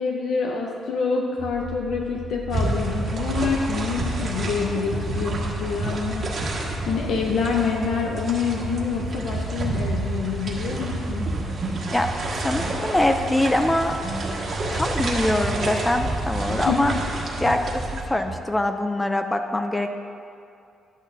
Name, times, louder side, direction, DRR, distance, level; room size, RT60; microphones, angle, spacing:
voice 1, 0.0-6.5 6.9-11.3 16.5-16.9, left 5 dB, 75° left, 0 dB, 0.7 m, -27 dB
sound 1, 1.4-18.4, right 2 dB, 25° right, 1.5 m, -39 dB
sound 2, 2.5-18.0, right 2 dB, 50° right, 1.5 m, -29 dB
sound 3, 3.7-11.5, left 4 dB, 40° left, 0.8 m, -46 dB
voice 2, 12.4-13.9 14.7-16.9 17.4-19.9, left 1 dB, 10° left, 6 dB, 0.4 m, -23 dB
11.5 x 9.0 x 2.7 m, 2.5 s
cardioid pair, 120°, 0 cm